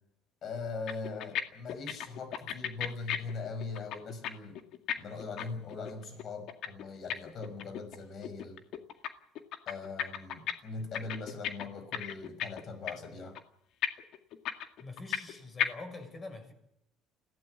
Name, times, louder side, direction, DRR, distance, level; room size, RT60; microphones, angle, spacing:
voice 1, 0.4-4.6 5.0-8.6 9.7-13.4, left 4 dB, 50° left, 9 dB, 5.9 m, -41 dB
sound 1, 0.6-0.7 0.9-1.4 1.7-4.3 4.5-8.0 8.2-9.1 9.3-10.5 10.8-12.6 12.9-13.1 13.3-13.4 13.8-15.3 15.6-15.7, left 10 dB, 65° left, 2.0 m, -34 dB
voice 2, 14.8-16.5, left 3 dB, 25° left, 7 dB, 6.4 m, -45 dB
21.5 x 16.5 x 8.1 m, 0.79 s
cardioid pair, 105°, 0 cm